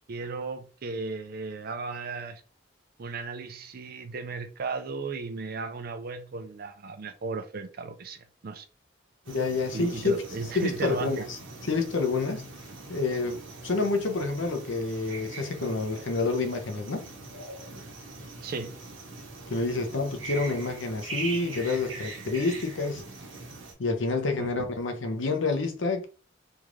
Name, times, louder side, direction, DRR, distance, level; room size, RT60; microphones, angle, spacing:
voice 1, 0.1-2.4 3.0-8.7 9.7-11.3 18.4-18.8 24.4-24.7, right 4 dB, 50° right, 0.4 m, -35 dB
sound 1, 9.2-23.7, right 3 dB, 80° right, 0.9 m, -42 dB
voice 2, 9.3-10.2 10.6-11.4 11.7-12.5 12.9-17.0 19.5-23.0 23.8-26.1, left 3 dB, 70° left, 0.7 m, -28 dB
3.5 x 2.4 x 3.1 m
head